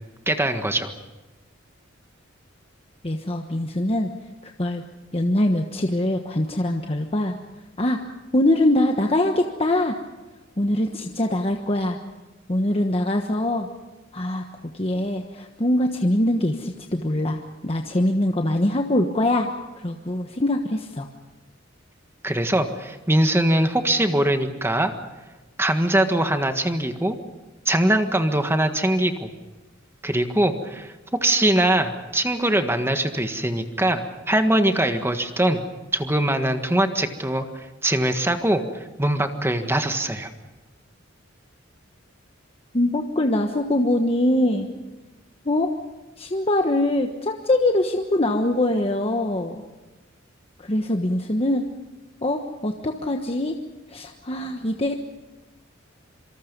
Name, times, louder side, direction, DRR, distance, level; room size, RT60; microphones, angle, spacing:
voice 1, 0.3-0.9 22.2-24.9 25.6-27.1 27.6-29.3 30.0-30.9 31.2-35.6 35.9-38.6 39.0-40.3, right 1 dB, 15° right, 7 dB, 1.6 m, -22 dB
voice 2, 3.0-4.1 4.4-4.8 5.1-7.3 7.8-8.0 8.3-10.0 10.6-12.0 12.5-13.7 14.1-14.4 14.7-19.5 19.8-21.1 42.7-44.7 45.4-45.7 46.2-49.6 50.6-51.7 52.2-53.6 53.9-54.9, left 1 dB, 30° left, 3 dB, 1.3 m, -23 dB
26.5 x 25.0 x 5.4 m, 1.2 s
head